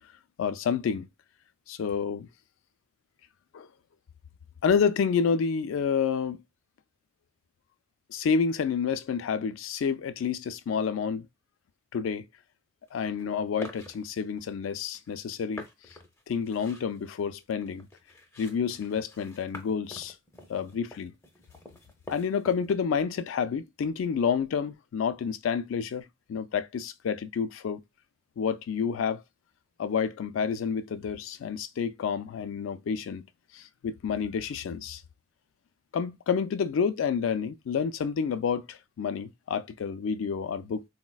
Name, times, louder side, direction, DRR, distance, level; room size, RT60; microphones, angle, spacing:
voice 1, 0.4-1.1 1.7-2.3 3.5-3.7 4.6-6.4 8.1-11.3 11.9-12.3 12.9-15.6 16.3-17.9 18.4-20.1 20.5-21.1 22.1-27.8 28.4-29.2 29.8-33.2 33.5-35.0 35.9-40.9, left 6 dB, 85° left, 0.3 m, -29 dB
sound 1, 12.9-13.2 13.6-14.5 15.1-15.2 15.5-22.7, left 1 dB, 15° left, 0.5 m, -47 dB
3.9 x 2.1 x 2.2 m
head